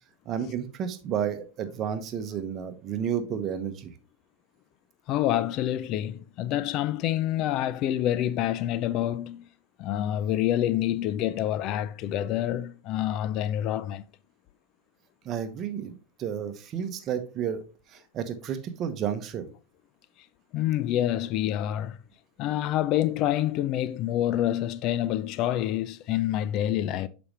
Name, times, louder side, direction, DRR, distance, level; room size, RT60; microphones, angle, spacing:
voice 1, 0.2-3.9 15.2-17.6 17.9-19.5, right 8 dB, 40° right, 1.0 m, -31 dB
voice 2, 5.1-9.5 9.8-14.0 20.5-22.0 22.4-27.1, left 12 dB, 50° left, 0.4 m, -27 dB
6.9 x 5.1 x 3.2 m
hypercardioid pair, 115°, 0 cm